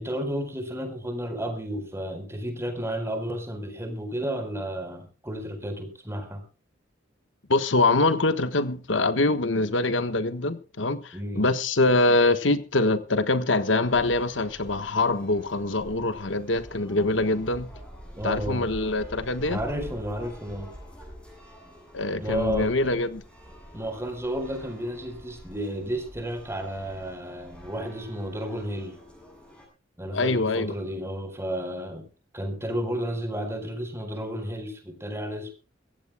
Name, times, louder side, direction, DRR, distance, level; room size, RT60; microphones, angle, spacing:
voice 1, 0.0-6.4 11.1-11.5 18.1-18.7 19.5-20.7 22.2-22.7 23.7-29.0 30.0-32.0 32.3-35.5, equal, 15° right, 4.4 m, -32 dB
voice 2, 7.5-17.7 18.2-19.6 21.9-23.2 30.1-30.7, left 2 dB, 70° left, 1.4 m, -24 dB
sound 1, 13.8-29.7, equal, 5° left, 7.5 m, -45 dB
24.5 x 16.0 x 2.3 m
head